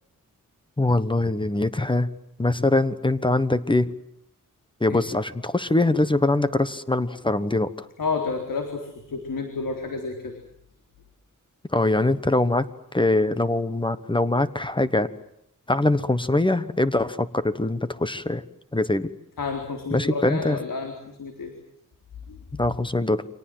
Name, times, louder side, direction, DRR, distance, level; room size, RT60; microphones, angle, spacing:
voice 1, 0.8-2.1 2.4-3.9 4.8-7.9 11.7-12.7 12.9-15.1 15.7-18.4 18.7-19.1 19.9-20.6 22.5-23.2, left 2 dB, 15° left, 13 dB, 1.2 m, -23 dB
voice 2, 8.0-10.4 19.4-21.5 22.3-22.4, left 4 dB, 80° left, 3 dB, 4.1 m, -30 dB
29.0 x 25.5 x 7.8 m, 0.74 s
wide cardioid pair, 170°, 33 cm